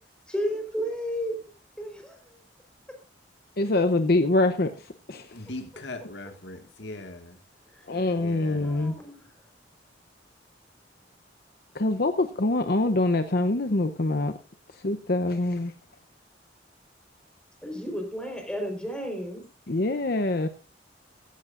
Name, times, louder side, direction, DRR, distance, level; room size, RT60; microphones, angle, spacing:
voice 1, 0.3-1.5 1.8-2.2 7.7-8.0 8.6-9.3 17.6-19.4, equal, 5° left, 4.4 m, -32 dB
voice 2, 3.6-5.4 7.9-8.9 11.7-14.4 14.8-15.7 19.7-20.5, left 2 dB, 55° left, 0.8 m, -25 dB
voice 3, 5.3-7.4 8.1-9.0, left 2 dB, 75° left, 2.0 m, -40 dB
16.0 x 15.0 x 2.6 m
head